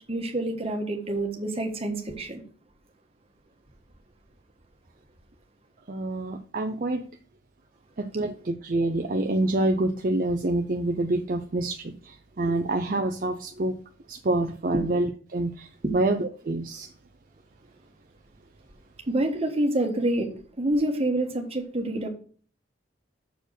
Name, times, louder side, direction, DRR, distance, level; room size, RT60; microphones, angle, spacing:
voice 1, 0.1-2.4 19.1-20.3 20.6-22.1, right 1 dB, 35° right, 1.5 m, -27 dB
voice 2, 5.9-7.0 8.0-13.8 14.1-16.9, right 2 dB, 50° right, 0.6 m, -27 dB
6.7 x 4.4 x 6.4 m
head